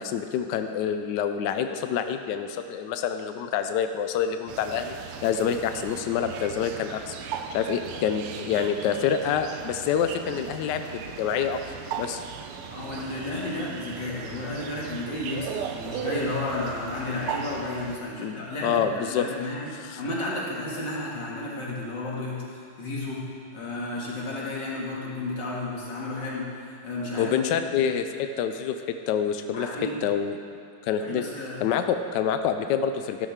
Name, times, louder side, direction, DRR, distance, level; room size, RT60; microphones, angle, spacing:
voice 1, 0.0-4.9 5.2-7.1 7.5-11.6 12.0-12.2 18.2-19.3 19.8-20.0 27.2-29.7 30.0-30.4 30.8-31.2 31.6-33.3, left 8 dB, 80° left, 8 dB, 1.0 m, -27 dB
sound 1, 4.5-18.0, right 8 dB, 85° right, 1.6 m, -37 dB
voice 2, 12.7-19.7 20.0-23.3 23.5-27.3 27.6-27.9 29.5-30.0 31.0-31.7, left 2 dB, 55° left, -5 dB, 2.8 m, -32 dB
13.5 x 12.0 x 3.6 m, 2.4 s
omnidirectional pair, 2.4 m